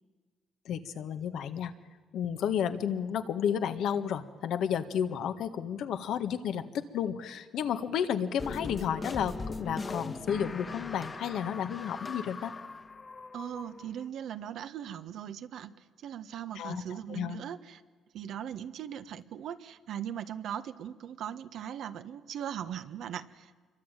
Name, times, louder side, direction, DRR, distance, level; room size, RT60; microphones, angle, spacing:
voice 1, 0.7-1.7 2.1-12.5 16.6-17.4, left 8 dB, 75° left, 9 dB, 1.7 m, -32 dB
sound 1, 8.4-14.1, left 3 dB, 30° left, 1.4 m, -40 dB
voice 2, 13.3-15.7 16.0-17.8 18.1-23.6, right 9 dB, 75° right, 10 dB, 1.4 m, -39 dB
26.5 x 23.5 x 9.1 m, 1.4 s
cardioid pair, 90°, 0 cm